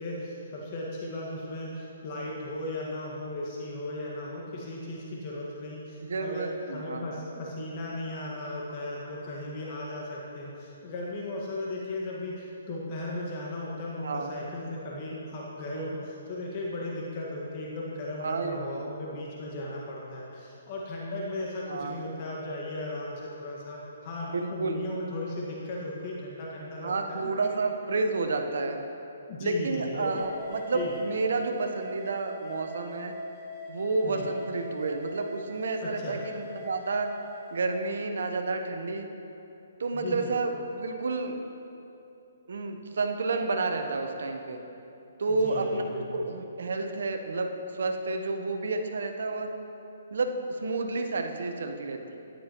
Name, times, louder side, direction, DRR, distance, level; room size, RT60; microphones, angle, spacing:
voice 1, 0.0-27.5 29.3-30.3 30.7-30.9 34.0-34.3 35.8-36.2 39.9-40.3 45.3-46.3, left 1 dB, 40° left, -4 dB, 1.6 m, -36 dB
voice 2, 6.1-7.1 14.0-14.3 15.7-15.9 18.2-18.8 21.7-22.0 24.3-24.8 26.8-28.8 29.4-33.1 33.7-37.1 37.5-39.1 39.8-41.3 42.5-44.6 45.2-45.8 46.1-49.6 50.1-52.2, right 3 dB, 75° right, 5 dB, 1.0 m, -30 dB
sound 1, 30.2-37.9, left 1 dB, ahead, 2.5 m, -42 dB
14.0 x 10.0 x 3.0 m, 2.8 s
hypercardioid pair, 150°, 0 cm